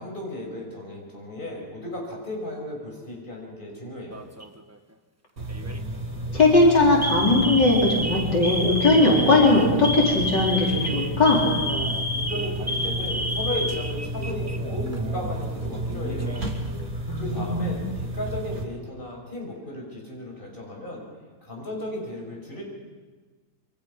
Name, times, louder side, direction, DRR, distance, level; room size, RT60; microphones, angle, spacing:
voice 1, 0.0-4.2 12.1-16.5 17.1-21.1 21.4-22.6, left 1 dB, 30° left, -1 dB, 6.4 m, -35 dB
Alarm, 4.1-4.6 5.5-5.8 6.2-6.4 7.0-14.6 14.9-15.0 15.9-16.6, equal, 10° right, 0.9 m, -30 dB
sound 1, 5.4-18.6, right 1 dB, 55° right, 3.2 m, -31 dB
voice 2, 6.3-11.5 17.1-17.7, left 2 dB, 85° left, -3 dB, 5.2 m, -19 dB
27.0 x 25.5 x 5.8 m, 1.4 s
omnidirectional pair, 1.9 m